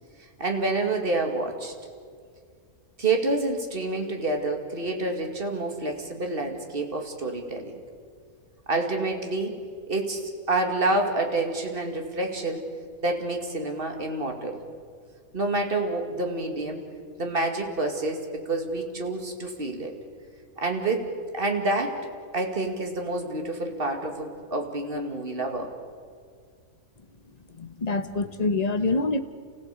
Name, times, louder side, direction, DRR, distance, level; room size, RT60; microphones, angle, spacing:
voice 1, 0.4-1.7 3.0-7.7 8.7-9.6 9.9-12.6 13.0-14.6 15.3-16.8 17.2-19.9 20.6-22.0 22.3-25.7, right 2 dB, 40° right, 3 dB, 2.5 m, -28 dB
voice 2, 27.5-29.2, left 3 dB, 30° left, 9 dB, 1.1 m, -26 dB
29.5 x 16.0 x 8.3 m, 2.1 s
omnidirectional pair, 1.5 m